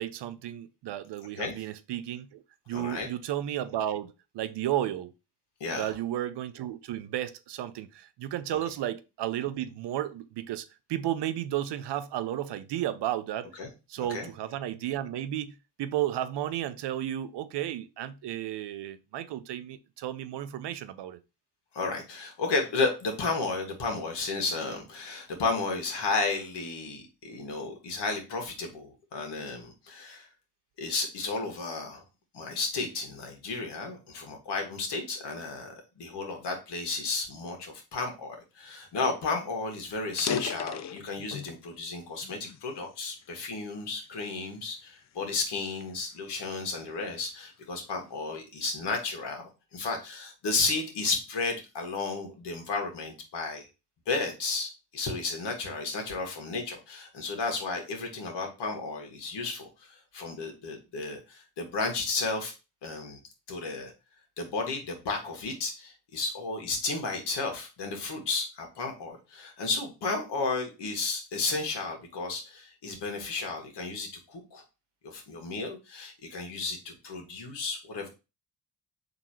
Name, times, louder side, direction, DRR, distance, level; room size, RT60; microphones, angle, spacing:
voice 1, 0.0-5.1 5.8-13.5 13.9-21.2, right 12 dB, 75° right, 0.6 m, -33 dB
voice 2, 2.7-3.1 5.6-5.9 13.6-13.7 14.1-14.3 21.7-30.3 30.8-32.0 32.3-53.7 54.1-62.5 62.8-63.2 63.5-63.9 64.4-74.6 75.0-78.1, left 3 dB, 70° left, 1.6 m, -33 dB
sound 1, 39.4-39.5 40.0-41.7 42.2-43.5 44.1-44.3 44.9-47.0, left 8 dB, 40° left, 0.4 m, -37 dB
3.8 x 2.9 x 4.3 m
supercardioid pair, 60°, 42 cm